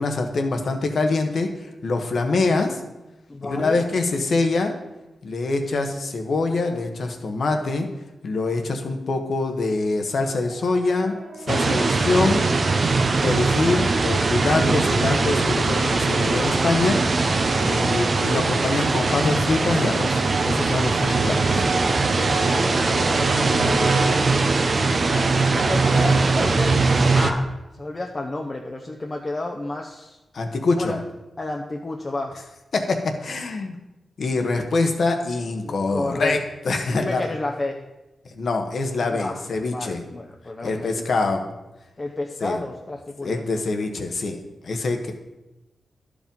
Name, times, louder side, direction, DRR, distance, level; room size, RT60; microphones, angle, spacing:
voice 1, 0.0-2.8 3.4-4.7 5.2-7.9 8.2-12.4 13.2-17.0 17.6-21.6 30.3-31.0 32.7-33.8 34.2-36.4 36.6-37.3 38.3-40.0 40.6-41.4 42.4-42.6 43.2-44.4 44.6-45.1, left 3 dB, 70° left, 4 dB, 1.2 m, -24 dB
voice 2, 3.3-3.8 17.5-17.7 22.2-24.6 25.3-26.8 27.1-27.5 27.8-30.2 30.7-31.0 31.4-32.4 35.6-36.4 36.9-37.8 39.1-41.4 42.0-43.6, left 2 dB, 35° left, 1 dB, 0.8 m, -31 dB
Brass instrument, 10.3-12.2 12.9-15.0 15.7-24.3 24.9-26.3 26.6-27.4, right 3 dB, 75° right, 1.7 m, -33 dB
sound 1, 11.5-27.3, right 3 dB, 55° right, 0.8 m, -21 dB
11.0 x 5.0 x 5.3 m, 1.0 s
cardioid pair, 65°, 0 cm